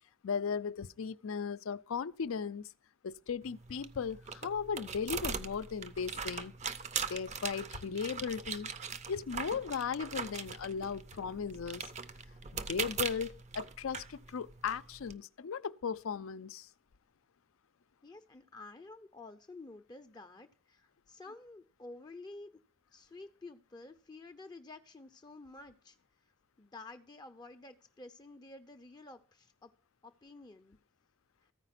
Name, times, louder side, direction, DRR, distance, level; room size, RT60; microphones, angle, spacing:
voice 1, 0.2-2.7 3.0-6.5 7.1-8.7 9.1-11.9 12.5-16.7, left 6 dB, 75° left, 0.5 m, -37 dB
sound 1, 3.4-15.1, right 6 dB, 35° right, 0.5 m, -41 dB
voice 2, 18.0-22.5 22.9-26.0 26.6-29.7 30.0-30.8, left 2 dB, 20° left, 0.5 m, -51 dB
14.0 x 4.9 x 5.8 m
head